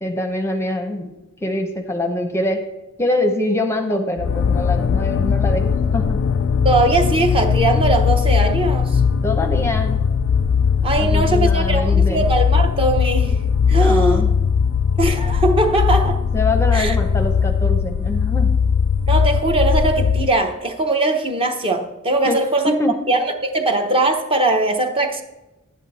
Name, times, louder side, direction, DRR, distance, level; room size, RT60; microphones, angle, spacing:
voice 1, 0.0-1.1 1.4-2.6 3.0-5.6 5.9-6.2 9.2-10.0 11.0-12.3 13.7-14.3 16.3-18.5 22.2-22.4 22.6-22.9, left 1 dB, 15° left, 5 dB, 0.7 m, -24 dB
sound 1, 4.2-20.4, left 6 dB, 60° left, 0.4 m, -19 dB
voice 2, 6.6-9.0 10.8-13.4 13.7-14.2 15.0-16.2 16.7-17.0 19.1-22.7 23.1-25.2, right 2 dB, 25° right, 5 dB, 0.9 m, -20 dB
10.5 x 8.2 x 4.1 m, 0.99 s
head